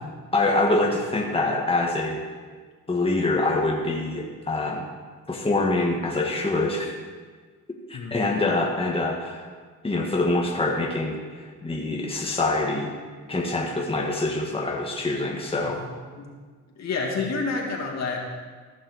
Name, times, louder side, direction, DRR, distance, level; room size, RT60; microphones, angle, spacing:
voice 1, 0.3-2.2 2.9-4.9 5.3-6.9 7.9-9.5 9.8-12.9 13.3-15.8, left 2 dB, 20° left, -1 dB, 1.8 m, -25 dB
voice 2, 16.8-18.2, left 4 dB, 60° left, -1 dB, 2.7 m, -28 dB
15.5 x 6.4 x 6.4 m, 1.5 s
cardioid pair, 90°, 30 cm